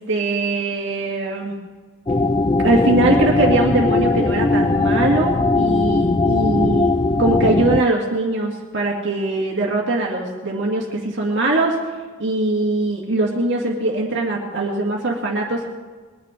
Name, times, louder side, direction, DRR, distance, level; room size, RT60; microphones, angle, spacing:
voice 1, 0.1-1.6 2.6-6.9 7.2-11.7 12.2-15.7, right 2 dB, 60° right, -2 dB, 2.1 m, -21 dB
sound 1, 2.1-7.8, left 3 dB, 20° left, 0.4 m, -19 dB
21.0 x 10.5 x 5.1 m, 1.4 s
head